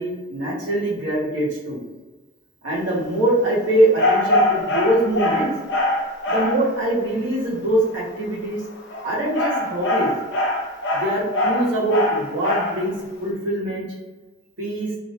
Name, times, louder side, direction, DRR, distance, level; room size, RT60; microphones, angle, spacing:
voice 1, 0.0-1.8 2.6-5.5 6.3-8.6 9.0-10.2 10.9-12.9 13.2-13.9 14.6-14.9, right 1 dB, 70° right, -6 dB, 0.9 m, -23 dB
sound 1, 4.0-6.6 8.7-12.8, left 2 dB, 60° left, 0.5 m, -22 dB
2.5 x 2.1 x 2.7 m, 1.2 s
head